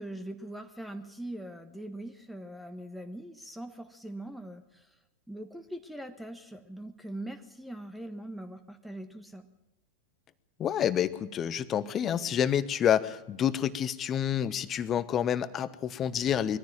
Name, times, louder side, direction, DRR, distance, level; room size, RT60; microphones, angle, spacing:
voice 1, 0.0-5.0 5.3-9.5, right 1 dB, ahead, 8 dB, 1.4 m, -42 dB
voice 2, 10.6-16.6, left 9 dB, 30° left, 15 dB, 1.1 m, -28 dB
22.5 x 15.0 x 9.0 m, 0.94 s
figure-of-eight pair, 90°, 0 cm